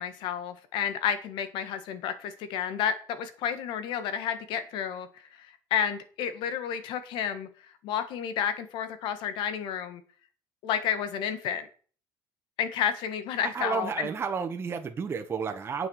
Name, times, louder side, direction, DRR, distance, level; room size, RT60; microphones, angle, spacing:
voice 1, 0.0-5.1 5.4-7.5 7.8-10.0 10.6-11.7 12.6-14.1, left 8 dB, 75° left, 11 dB, 1.8 m, -31 dB
voice 2, 13.4-15.9, right 5 dB, 30° right, 5 dB, 1.4 m, -31 dB
8.8 x 7.2 x 6.5 m, 0.41 s
cardioid pair, 125°, 8 cm